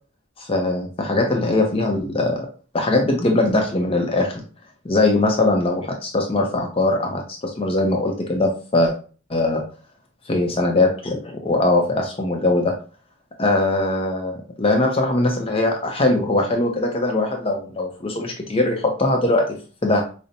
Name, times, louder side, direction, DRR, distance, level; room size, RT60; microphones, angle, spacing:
voice 1, 0.4-2.5 2.7-4.4 4.8-8.9 9.3-9.6 10.3-12.7 13.4-20.0, left 2 dB, 25° left, 2 dB, 0.5 m, -21 dB
5.1 x 2.1 x 2.7 m, 0.37 s
head